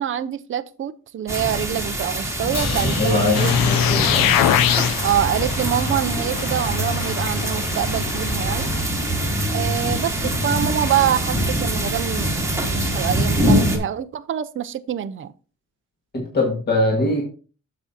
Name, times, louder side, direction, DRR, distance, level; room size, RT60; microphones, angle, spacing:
voice 1, 0.0-3.8 5.0-8.7 9.5-12.4 12.7-15.3, right 10 dB, 35° right, 11 dB, 0.5 m, -25 dB
sound 1, 1.3-13.8, right 1 dB, 10° right, 1.4 m, -24 dB
Crash cymbal, 2.5-6.7, left 7 dB, 50° left, 0.9 m, -36 dB
voice 2, 3.0-4.3 16.1-17.2, left 2 dB, 30° left, -1 dB, 1.8 m, -22 dB
sound 2, 3.3-8.8, left 10 dB, 85° left, 0.6 m, -23 dB
8.9 x 7.2 x 2.8 m, 0.38 s
wide cardioid pair, 150°, 34 cm